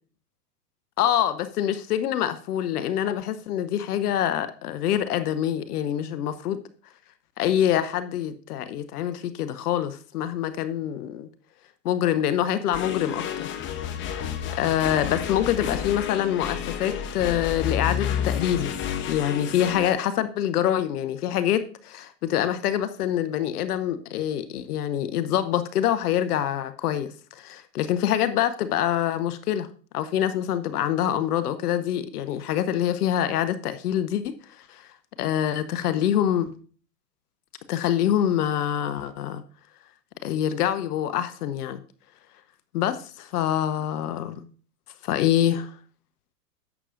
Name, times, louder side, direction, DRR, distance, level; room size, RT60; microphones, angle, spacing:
voice 1, 1.0-6.6 7.4-11.3 11.8-13.5 14.6-18.7 19.1-29.7 29.9-34.9 35.2-36.5 37.7-39.4 40.2-41.8 42.7-44.4 45.0-45.7, left 10 dB, 65° left, 12 dB, 0.9 m, -25 dB
sound 1, 12.7-19.9, left 9 dB, 25° left, 0.8 m, -30 dB
11.0 x 8.3 x 2.5 m, 0.41 s
hypercardioid pair, 125°, 50 cm